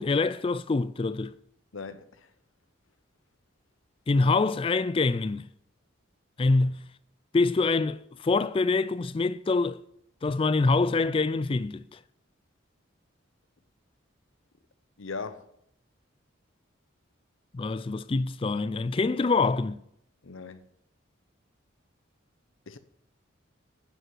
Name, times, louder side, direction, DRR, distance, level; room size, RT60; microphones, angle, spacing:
voice 1, 0.0-1.3 4.1-5.5 6.4-6.8 7.3-9.8 10.2-12.0 17.5-19.8, left 3 dB, 25° left, 0.3 m, -25 dB
voice 2, 1.7-2.3 15.0-15.5 20.2-20.6 22.7-22.8, left 4 dB, 75° left, 0.8 m, -39 dB
9.6 x 5.4 x 7.7 m
head